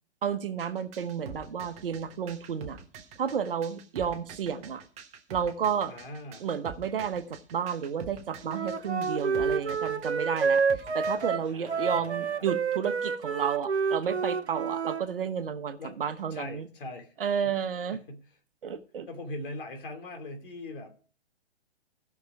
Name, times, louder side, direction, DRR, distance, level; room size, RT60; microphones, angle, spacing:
voice 1, 0.2-2.8 3.2-4.8 5.3-5.9 6.4-16.7 17.2-18.0 18.6-19.1, right 7 dB, 55° right, 10 dB, 1.2 m, -31 dB
sound 1, 0.6-11.3, right 6 dB, 20° right, 1.2 m, -46 dB
voice 2, 5.9-6.4 11.5-12.5 15.8-16.0 16.3-17.1 17.4-17.5 17.9-18.2 19.1-20.9, left 2 dB, 55° left, 5 dB, 2.8 m, -41 dB
Wind instrument woodwind instrument, 8.4-15.0, right 5 dB, 85° right, 0.8 m, -29 dB
15.5 x 6.1 x 4.8 m, 0.41 s
figure-of-eight pair, 125°, 32 cm